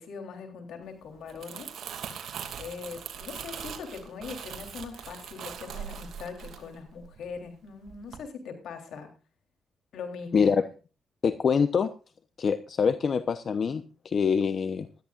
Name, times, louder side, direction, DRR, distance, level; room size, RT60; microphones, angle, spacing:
voice 1, 0.0-1.7 2.6-9.1 9.9-10.5, left 5 dB, 80° left, 5 dB, 3.6 m, -41 dB
Crumpling crinkling, 1.1-7.5 7.9-8.2, right 8 dB, 75° right, 2.5 m, -41 dB
voice 2, 10.3-10.6 11.2-11.9 12.4-14.9, left 6 dB, 60° left, 11 dB, 0.9 m, -25 dB
20.5 x 13.5 x 2.5 m, 0.35 s
cardioid pair, 65°, 0 cm